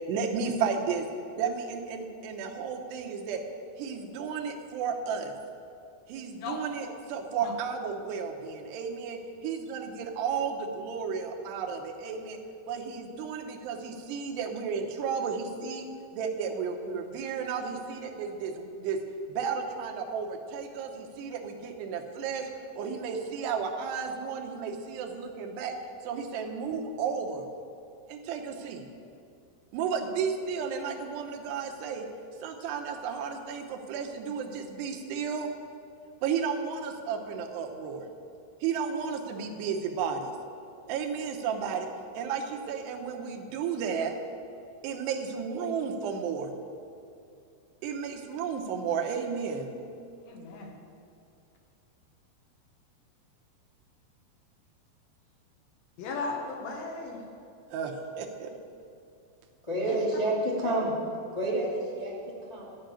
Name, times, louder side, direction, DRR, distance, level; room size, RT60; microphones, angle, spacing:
voice 1, 0.1-1.1 1.4-3.4 3.8-5.3 6.1-12.4 12.7-15.9 16.1-19.0 19.3-25.8 26.0-27.5 28.1-28.9 29.7-32.1 32.4-35.5 36.2-38.1 38.6-40.4 40.9-41.9 42.1-44.1 44.8-46.6 47.8-49.7 57.7-58.5, right 6 dB, 80° right, 3 dB, 3.0 m, -33 dB
voice 2, 50.2-50.7 56.0-57.2 59.8-60.0 60.6-60.7, left 4 dB, 70° left, 1 dB, 2.9 m, -36 dB
voice 3, 59.6-60.9 61.3-62.7, right 1 dB, 15° left, -4 dB, 1.0 m, -29 dB
13.0 x 5.8 x 9.0 m, 2.5 s
omnidirectional pair, 4.8 m